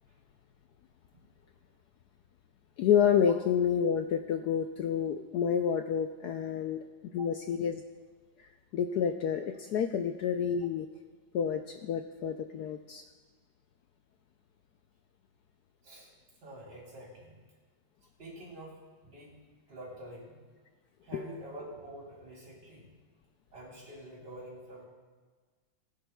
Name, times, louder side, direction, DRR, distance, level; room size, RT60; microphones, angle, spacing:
voice 1, 2.8-6.8 7.1-7.8 8.4-10.9 11.3-13.0 21.1-21.2, left 8 dB, 75° left, 6 dB, 0.9 m, -29 dB
voice 2, 16.4-17.4 18.2-19.4 19.7-20.4 21.0-22.9 23.5-24.9, right 1 dB, 65° right, -4 dB, 4.2 m, -47 dB
19.5 x 10.5 x 2.3 m, 1.5 s
omnidirectional pair, 2.1 m